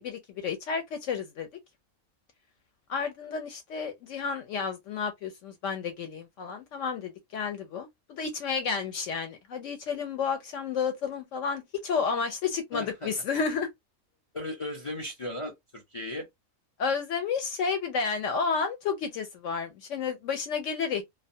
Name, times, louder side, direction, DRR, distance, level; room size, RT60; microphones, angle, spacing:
voice 1, 0.0-1.5 2.9-13.7 16.8-21.0, left 5 dB, 70° left, 0.9 m, -31 dB
voice 2, 12.7-13.1 14.3-16.3, left 1 dB, 45° left, 0.4 m, -36 dB
2.4 x 2.2 x 2.6 m
omnidirectional pair, 1.4 m